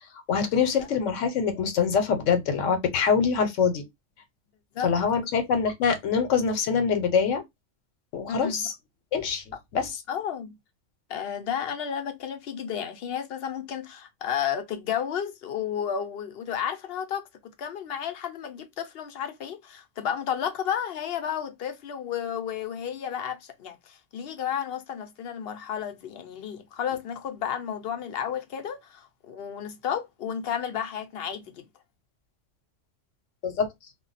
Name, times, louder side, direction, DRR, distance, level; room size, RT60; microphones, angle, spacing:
voice 1, 0.3-3.8 4.8-7.4 8.1-8.7 9.1-9.4 9.7-9.9 33.4-33.7, left 6 dB, 80° left, 1.0 m, -24 dB
voice 2, 8.3-8.7 10.1-10.5 11.1-31.6, left 8 dB, 60° left, 0.7 m, -32 dB
2.2 x 2.0 x 3.8 m
omnidirectional pair, 1.3 m